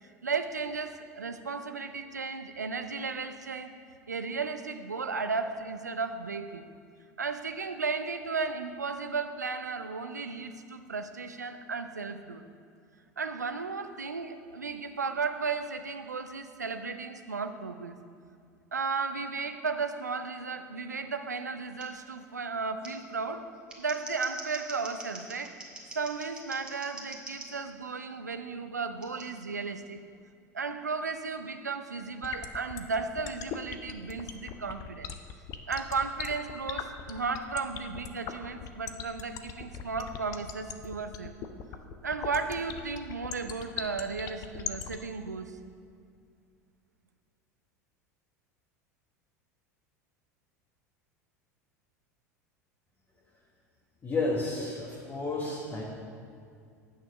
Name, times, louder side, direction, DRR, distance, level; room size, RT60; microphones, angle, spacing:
voice 1, 0.0-3.7 4.1-6.6 7.2-12.4 13.2-18.0 18.7-23.4 23.8-25.5 25.9-30.0 30.5-35.1 35.7-41.3 42.0-45.6, right 4 dB, 85° right, 8 dB, 0.5 m, -34 dB
Scissors, 21.8-21.9 22.8-22.9 23.5-27.5 29.0-29.3, right 2 dB, 10° right, 1.8 m, -44 dB
sound 1, 32.2-45.0, left 9 dB, 40° left, 0.7 m, -38 dB
voice 2, 54.0-55.8, left 2 dB, 25° left, -4 dB, 1.5 m, -31 dB
8.7 x 6.7 x 6.3 m, 2.3 s
figure-of-eight pair, 75°, 9 cm